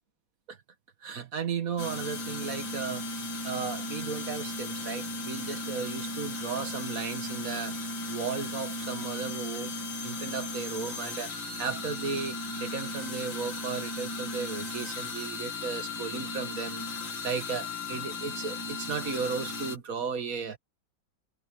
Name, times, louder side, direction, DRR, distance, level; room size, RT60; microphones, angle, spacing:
voice 1, 1.0-7.8 8.1-9.7 10.0-11.3 11.6-16.9 17.2-20.6, right 5 dB, 50° right, 1.8 m, -35 dB
sound 1, 1.8-19.8, left 2 dB, 85° left, 3.3 m, -36 dB
omnidirectional pair, 2.0 m